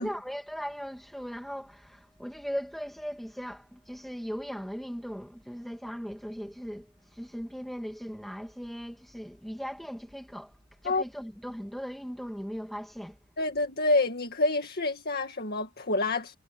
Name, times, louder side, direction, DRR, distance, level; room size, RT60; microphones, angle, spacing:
voice 1, 0.0-10.5 10.8-13.2, equal, ahead, 1.8 m, -38 dB
voice 2, 13.4-16.4, left 2 dB, 50° left, 1.9 m, -27 dB
head